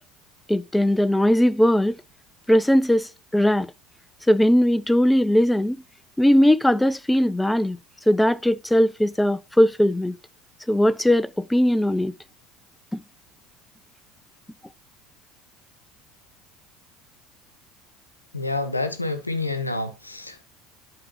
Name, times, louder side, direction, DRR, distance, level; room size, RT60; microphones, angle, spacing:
voice 1, 0.5-2.0 2.5-3.7 4.3-5.8 6.2-7.8 8.1-10.2 10.7-12.1 12.9-13.0, equal, 5° left, 0.5 m, -19 dB
voice 2, 18.3-20.4, left 2 dB, 90° left, 0.8 m, -28 dB
11.0 x 4.6 x 3.0 m
figure-of-eight pair, 65°, 0 cm